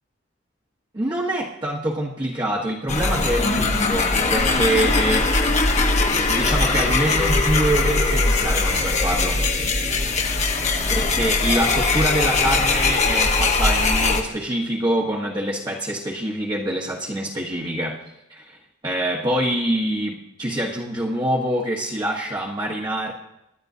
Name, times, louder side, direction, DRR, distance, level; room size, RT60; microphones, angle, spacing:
voice 1, 0.9-5.3 6.3-9.4 10.9-18.0 18.3-18.6 18.8-23.1, right 1 dB, 25° right, -4 dB, 1.2 m, -25 dB
sound 1, 2.9-14.2, left 3 dB, 35° left, 1.1 m, -20 dB
25.0 x 11.0 x 2.7 m, 0.86 s
head